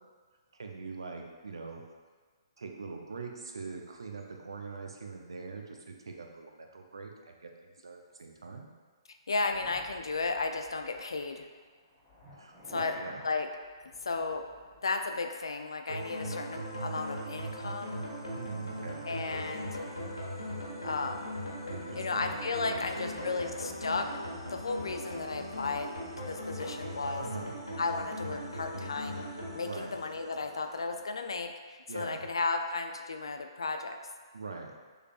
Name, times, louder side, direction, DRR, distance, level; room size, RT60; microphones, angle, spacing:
voice 1, 0.5-1.8 2.6-8.7 12.4-13.2 18.3-19.0 21.7-22.3 22.6-23.4 27.2-27.5 29.6-29.9 31.9-32.3 34.3-34.7, right 4 dB, 65° right, 3 dB, 0.6 m, -43 dB
voice 2, 9.3-11.5 12.7-13.0 13.2-13.5 13.8-14.4 14.8-18.0 19.0-19.7 20.8-21.4 22.0-24.1 24.5-25.9 26.2-27.2 27.8-29.2 29.5-34.0, left 3 dB, 70° left, 5 dB, 0.4 m, -34 dB
sound 1, 9.5-15.3 15.6-15.7 16.0-16.1 16.5-20.2 20.8-21.0 21.3-21.6 23.8-26.5, left 1 dB, 5° right, 1.5 m, -57 dB
sound 2, 15.9-30.9, equal, 85° left, 1.2 m, -39 dB
6.4 x 3.3 x 2.4 m, 1.5 s
figure-of-eight pair, 125°, 3 cm